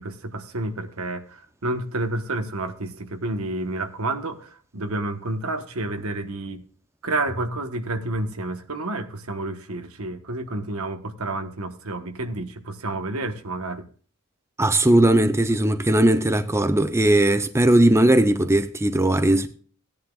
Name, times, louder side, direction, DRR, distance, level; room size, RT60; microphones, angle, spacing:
voice 1, 0.0-6.6 7.0-13.8, right 2 dB, 70° right, 1.3 m, -30 dB
voice 2, 14.6-19.5, right 1 dB, 10° right, 0.6 m, -18 dB
17.0 x 10.5 x 2.4 m
head